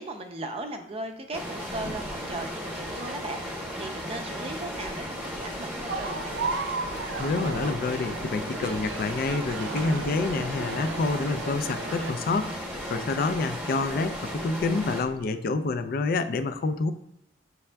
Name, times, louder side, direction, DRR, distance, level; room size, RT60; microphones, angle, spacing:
voice 1, 0.0-6.4, right 2 dB, 35° right, 6 dB, 0.5 m, -37 dB
sound 1, 1.3-15.0, equal, 10° right, 0.9 m, -36 dB
sound 2, 1.5-15.3, equal, 75° left, 0.7 m, -50 dB
sound 3, 5.9-12.1, right 3 dB, 85° right, 0.5 m, -35 dB
voice 2, 7.2-12.6 12.9-16.9, left 3 dB, 55° left, 10 dB, 0.3 m, -28 dB
6.7 x 3.4 x 2.2 m, 0.82 s
head